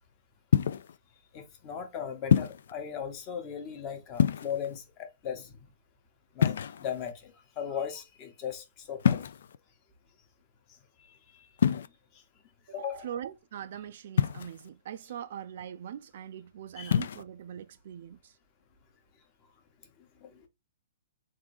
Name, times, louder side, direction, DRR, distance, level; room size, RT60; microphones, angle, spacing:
sound 1, 0.5-1.0 2.3-2.7 4.1-4.8 6.4-7.1 9.0-9.6 11.6-11.9 14.2-14.7 16.8-17.2, left 8 dB, 65° left, 0.3 m, -26 dB
voice 1, 1.3-5.6 6.3-9.2 11.3-11.5 12.7-13.1 16.8-17.0 20.2-20.5, left 8 dB, 25° left, 0.9 m, -38 dB
voice 2, 12.7-18.4, right 9 dB, 50° right, 0.3 m, -42 dB
3.6 x 2.6 x 4.5 m
hypercardioid pair, 165°, 0 cm